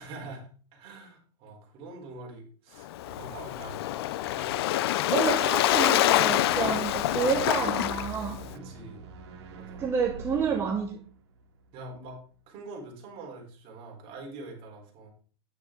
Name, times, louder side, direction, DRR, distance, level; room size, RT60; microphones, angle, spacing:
voice 1, 0.0-4.1 4.4-4.6 8.5-9.0 9.5-9.9 11.7-15.1, right 2 dB, 40° right, 0 dB, 4.1 m, -45 dB
Waves surf, 2.8-8.5, left 14 dB, 70° left, 0.5 m, -26 dB
voice 2, 5.1-8.4 9.8-11.0, right 6 dB, 20° right, 2 dB, 1.0 m, -29 dB
sound 1, 6.0-12.4, right 3 dB, 85° right, 2.4 m, -45 dB
9.7 x 8.9 x 3.8 m, 0.41 s
supercardioid pair, 155°, 14 cm